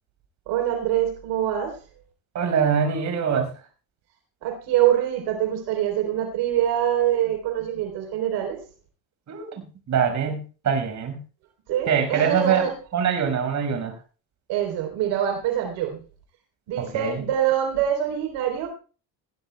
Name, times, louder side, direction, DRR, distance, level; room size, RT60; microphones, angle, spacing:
voice 1, 0.5-1.8 4.4-8.6 11.7-12.7 14.5-16.0 16.7-18.7, right 10 dB, 80° right, 2 dB, 3.7 m, -24 dB
voice 2, 2.3-3.5 9.3-11.2 11.9-13.9 16.8-17.2, right 7 dB, 45° right, 5 dB, 5.4 m, -24 dB
20.5 x 16.5 x 2.3 m, 0.37 s
cardioid pair, 130°, 40 cm